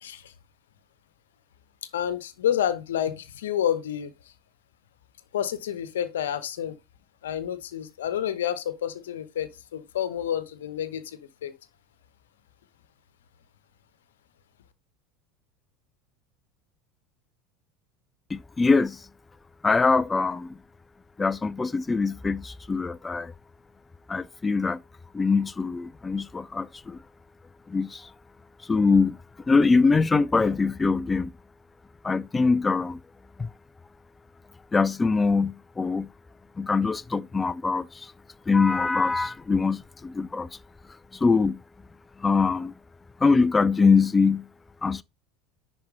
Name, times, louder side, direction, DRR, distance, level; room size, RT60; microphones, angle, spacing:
voice 1, 0.0-0.3 1.9-4.1 5.3-6.7 7.2-11.5, left 10 dB, 75° left, 1.0 m, -29 dB
voice 2, 18.3-19.0 19.6-20.5 21.2-23.3 24.1-24.8 25.1-27.0 27.7-28.1 28.7-29.2 29.5-31.3 32.0-33.0 33.4-33.5 34.7-36.1 36.6-38.1 38.5-40.5 41.2-41.6 42.2-42.7 43.2-44.4 44.8-45.0, left 4 dB, 20° left, 0.4 m, -23 dB
10.5 x 4.4 x 4.1 m
hypercardioid pair, 75°, 0 cm